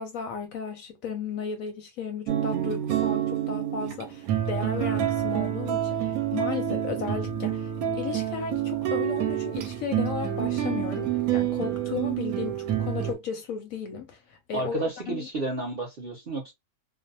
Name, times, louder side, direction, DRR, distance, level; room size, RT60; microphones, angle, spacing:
voice 1, 0.0-15.3, left 6 dB, 70° left, 0.9 m, -35 dB
sound 1, 2.3-13.1, right 11 dB, 70° right, 1.0 m, -28 dB
voice 2, 14.5-16.5, right 3 dB, 55° right, 0.6 m, -31 dB
2.5 x 2.1 x 2.6 m
omnidirectional pair, 1.7 m